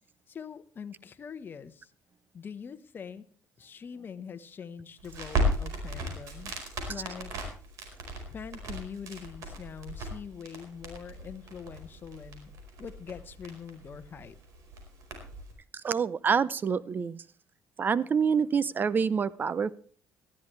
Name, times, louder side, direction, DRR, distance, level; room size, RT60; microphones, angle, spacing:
voice 1, 0.3-1.9 2.3-3.3 3.6-6.5 6.9-7.3 8.3-12.5 12.8-14.4, left 7 dB, 35° left, 10 dB, 1.1 m, -43 dB
Crackle, 5.0-15.5, right 1 dB, 70° right, 4.6 m, -36 dB
voice 2, 15.8-17.2 17.8-19.7, right 6 dB, 35° right, 20 dB, 0.6 m, -27 dB
18.5 x 13.0 x 3.3 m, 0.43 s
cardioid pair, 100°, 6 cm